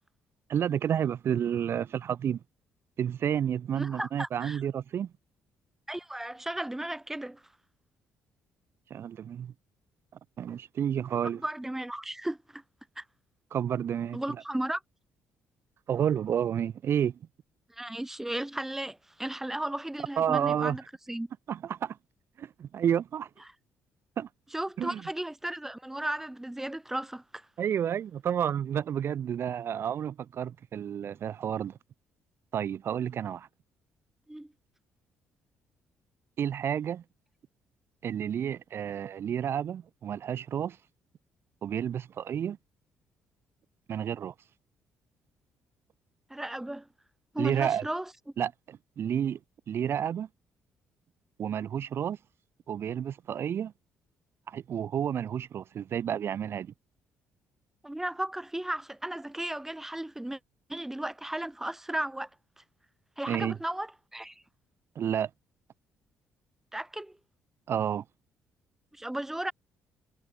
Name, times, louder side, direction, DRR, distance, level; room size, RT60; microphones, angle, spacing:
voice 1, 0.5-2.4 3.0-5.1 8.9-9.5 10.4-11.4 13.5-14.2 15.9-17.2 20.2-20.8 21.5-22.0 22.4-23.3 24.2-24.3 24.8-25.0 27.6-31.7 32.5-33.5 36.4-37.0 38.0-40.8 41.6-42.6 43.9-44.3 47.4-47.9 48.4-49.4 49.7-50.3 51.4-52.2 52.7-53.7 54.5-56.7 63.3-63.6 65.0-65.3 67.7-68.0, right 9 dB, 55° right, 0.4 m, -30 dB
voice 2, 3.8-4.6 5.9-7.4 11.4-12.6 13.0-13.1 14.1-14.8 17.7-20.8 21.1-21.3 24.5-27.5 34.3-34.5 46.3-46.9 47.3-48.1 57.8-60.4 60.7-62.3 62.6-62.7 63.2-64.4 66.7-67.2 68.9-69.5, right 1 dB, 5° right, 0.8 m, -35 dB
supercardioid pair, 75°, 5 cm